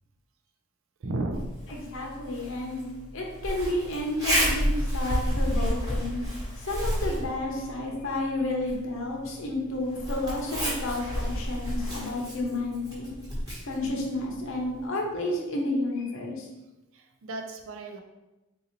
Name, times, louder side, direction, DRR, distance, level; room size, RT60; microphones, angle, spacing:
voice 1, 1.0-1.5 16.9-18.0, right 2 dB, 60° right, 4 dB, 0.4 m, -34 dB
Zipper (clothing), 1.3-14.9, equal, 20° right, 1.1 m, -32 dB
voice 2, 1.7-2.9 3.1-6.2 6.6-13.1 13.6-16.5, left 2 dB, 60° left, -1 dB, 0.7 m, -31 dB
3.8 x 2.7 x 2.9 m, 1.0 s
head